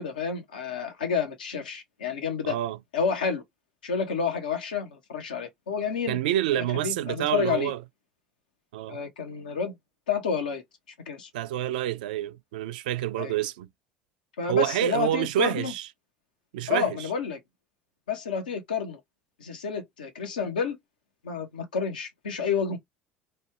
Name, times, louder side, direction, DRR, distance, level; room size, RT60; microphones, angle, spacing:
voice 1, 0.0-2.6 2.9-3.4 3.8-6.2 6.5-7.7 8.9-9.8 10.1-10.6 11.1-11.3 13.2-13.3 14.4-15.7 16.7-17.4 18.1-19.0 19.4-20.8 21.2-22.8, left 6 dB, 85° left, 0.9 m, -29 dB
voice 2, 2.4-2.8 6.1-7.8 8.7-9.0 11.3-13.7 14.5-15.9 16.5-17.0, right 12 dB, 75° right, 0.4 m, -28 dB
3.1 x 2.3 x 2.9 m
hypercardioid pair, 70°, 5 cm